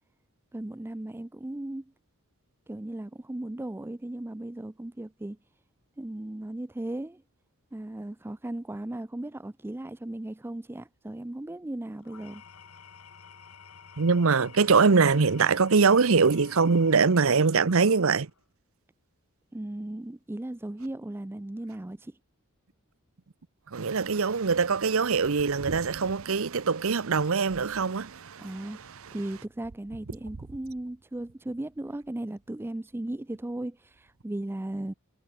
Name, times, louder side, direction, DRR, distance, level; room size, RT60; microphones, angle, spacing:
voice 1, 0.5-1.9 2.7-5.4 6.0-7.2 7.7-12.4 19.5-22.2 28.4-34.9, right 1 dB, 10° right, 0.4 m, -36 dB
Engine / Tools, 12.0-18.4, left 6 dB, 85° left, 1.4 m, -51 dB
voice 2, 14.0-18.3 23.7-29.2, right 5 dB, 65° right, 0.8 m, -23 dB
head